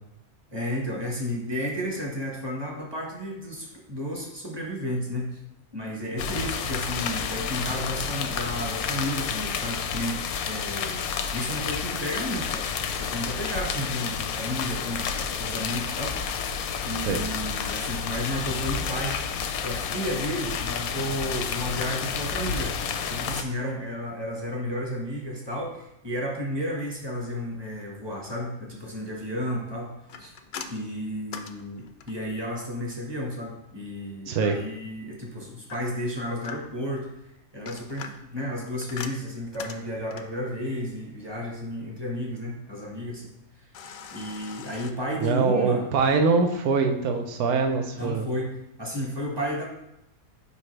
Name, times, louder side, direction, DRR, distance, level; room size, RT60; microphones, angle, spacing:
voice 1, 0.5-5.4 5.7-10.2 10.4-11.1 11.3-12.7 13.0-16.2 16.8-19.2 19.6-22.8 23.1-30.3 30.7-37.1 37.5-43.3 43.6-43.7 44.1-45.8 47.9-48.5 48.8-49.6, equal, 20° right, -1 dB, 1.1 m, -32 dB
sound 1, 6.2-23.4, left 6 dB, 85° left, 1.1 m, -30 dB
sound 2, 30.1-32.4 35.7-36.9 37.5-40.4 43.7-44.9, left 6 dB, 65° left, 0.6 m, -41 dB
voice 2, 34.3-34.6 45.2-48.3, right 4 dB, 85° right, 5 dB, 1.2 m, -23 dB
6.7 x 5.2 x 3.2 m, 0.84 s
omnidirectional pair, 1.5 m